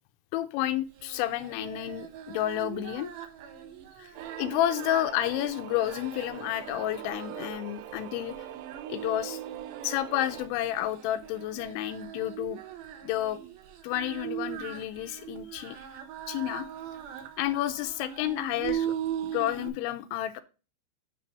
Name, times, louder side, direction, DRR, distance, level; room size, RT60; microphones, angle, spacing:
voice 1, 0.3-3.1 4.0-4.1 4.4-8.4 8.9-9.4 9.8-12.6 13.0-13.4 13.8-15.8 16.3-16.7 17.4-20.4, left 13 dB, 85° left, 2.9 m, -30 dB
Singing, 0.9-19.7, right 9 dB, 70° right, 2.4 m, -40 dB
sound 1, 4.2-10.5, right 13 dB, 85° right, 2.4 m, -43 dB
9.7 x 3.5 x 5.3 m
omnidirectional pair, 5.4 m